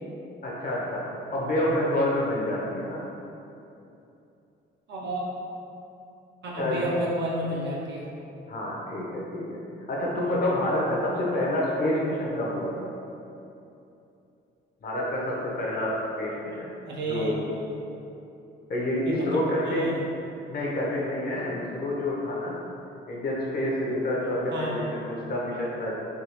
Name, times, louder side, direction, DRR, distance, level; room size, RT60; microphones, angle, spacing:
voice 1, 0.4-1.0 1.3-3.0 6.6-6.9 8.5-9.6 9.9-12.7 14.8-16.7 17.0-17.4 18.7-19.9 20.5-22.6 23.1-25.9, left 1 dB, 50° left, -4 dB, 0.8 m, -28 dB
voice 2, 4.9-5.2 6.4-8.0 16.9-17.3 19.1-20.0 24.5-24.8, right 1 dB, 65° right, -4 dB, 0.7 m, -31 dB
3.5 x 2.3 x 3.0 m, 2.8 s
cardioid pair, 90°, 20 cm